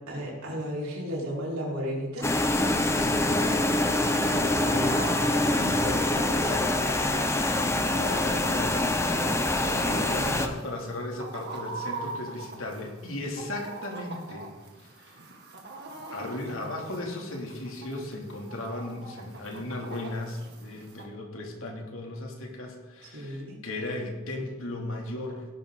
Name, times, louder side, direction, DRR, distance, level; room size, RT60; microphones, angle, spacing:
voice 1, 0.1-2.3 9.0-10.1 23.1-23.5, equal, 85° right, -4 dB, 5.0 m, -34 dB
sound 1, 2.2-10.5, left 1 dB, 15° left, 0.9 m, -25 dB
voice 2, 2.9-3.9 4.2-6.8 7.2-8.8 10.0-14.5 14.8-15.2 16.1-25.5, left 1 dB, 70° left, 0 dB, 2.9 m, -36 dB
Chicken rooster, 3.3-21.0, right 3 dB, 50° right, 2.1 m, -43 dB
17.0 x 11.5 x 4.0 m, 1.2 s
head